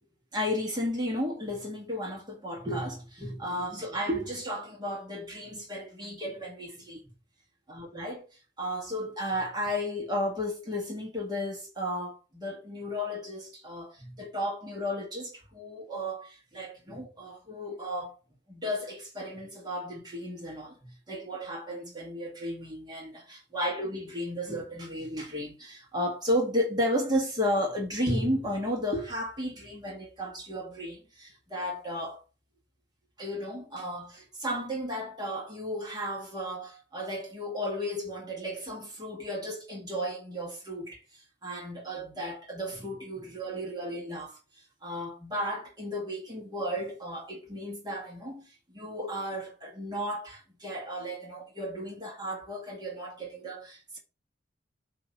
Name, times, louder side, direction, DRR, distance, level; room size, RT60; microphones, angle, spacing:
voice 1, 0.3-7.0 7.7-8.3 8.6-18.2 18.5-32.2 33.2-44.4 44.8-54.0, equal, 20° right, 1.8 m, -34 dB
8.2 x 3.0 x 5.4 m
head